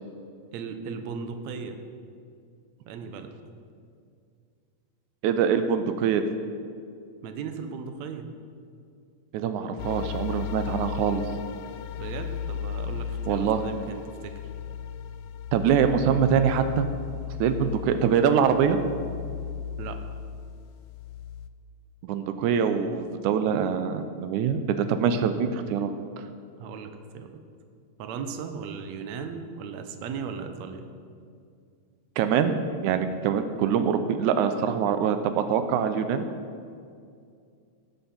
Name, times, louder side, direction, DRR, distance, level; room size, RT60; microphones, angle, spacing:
voice 1, 0.5-1.8 2.9-3.4 7.2-8.3 12.0-14.3 19.8-20.0 26.6-27.3 28.0-30.9, right 5 dB, 70° right, 6 dB, 2.1 m, -37 dB
voice 2, 5.2-6.2 9.3-11.2 13.3-13.6 15.5-16.9 17.4-18.8 22.0-25.9 26.2-26.3 32.2-32.6 32.8-36.3, right 7 dB, 90° right, 9 dB, 2.1 m, -24 dB
sound 1, 9.8-21.5, left 7 dB, 85° left, 1.4 m, -35 dB
18.0 x 9.0 x 4.3 m, 2.3 s
omnidirectional pair, 3.4 m